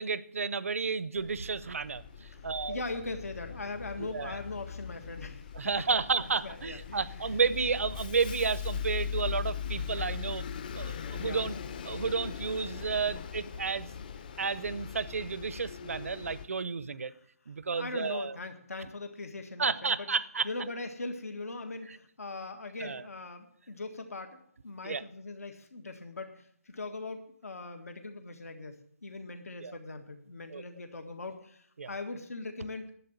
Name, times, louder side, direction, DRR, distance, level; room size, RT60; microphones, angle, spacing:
voice 1, 0.0-2.8 4.0-4.4 5.5-10.4 10.7-11.6 11.8-14.0 14.4-17.1 17.5-18.3 19.6-20.5 22.8-23.0 24.8-25.0 29.6-29.7 30.5-30.6 31.8-31.9, right 5 dB, 65° right, 17 dB, 0.8 m, -32 dB
Bus, 1.2-16.5, left 7 dB, 35° left, 0.8 m, -40 dB
voice 2, 2.3-7.4 11.2-11.4 17.8-20.1 20.4-32.9, left 3 dB, 75° left, 6 dB, 1.7 m, -41 dB
11.0 x 7.6 x 9.6 m, 0.67 s
hypercardioid pair, 160°, 8 cm